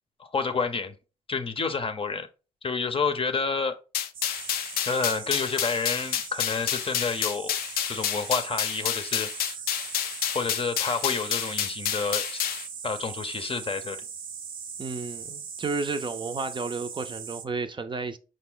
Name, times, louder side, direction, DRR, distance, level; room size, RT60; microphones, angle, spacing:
voice 1, 0.2-0.9 1.3-2.3 2.6-3.8 4.9-7.5 7.9-9.6 10.3-12.4 12.8-14.0, left 4 dB, 35° left, 0.6 m, -29 dB
sound 1, 3.9-12.7, left 10 dB, 80° left, 0.4 m, -29 dB
sound 2, 4.1-17.5, right 7 dB, 70° right, 0.7 m, -40 dB
voice 2, 14.8-18.2, right 4 dB, 30° right, 0.5 m, -32 dB
4.8 x 2.1 x 3.7 m
supercardioid pair, 60°, 15 cm